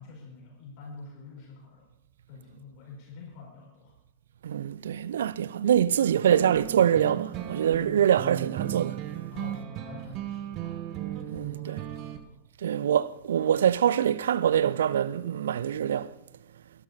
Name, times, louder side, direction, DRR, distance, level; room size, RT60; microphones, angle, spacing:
voice 1, 0.0-1.9 2.3-3.9 8.3-8.4 9.3-10.8 11.2-12.4, left 3 dB, 45° left, 4.8 m, -47 dB
voice 2, 4.4-9.0 11.3-11.8 12.6-16.1, right 9 dB, 65° right, 0.5 m, -24 dB
sound 1, 6.2-12.2, right 12 dB, 40° right, 1.4 m, -36 dB
22.5 x 10.5 x 4.1 m
figure-of-eight pair, 90°, 0 cm